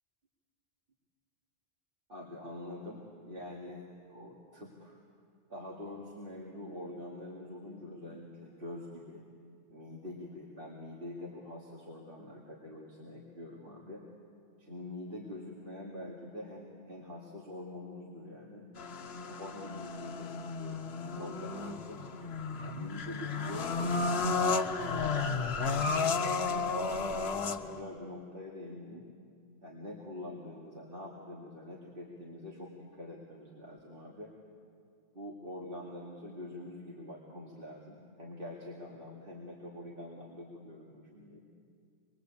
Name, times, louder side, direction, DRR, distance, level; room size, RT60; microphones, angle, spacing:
voice 1, 2.1-5.0 5.5-9.2 9.7-14.0 14.6-18.7 19.3-22.0 22.6-24.1 24.9-29.0 29.6-34.3 35.1-41.4, left 1 dB, 50° right, -4 dB, 2.7 m, -45 dB
sound 1, 18.8-27.8, left 4 dB, 65° left, 1.2 m, -33 dB
25.5 x 22.0 x 8.6 m, 2.3 s
omnidirectional pair, 1.1 m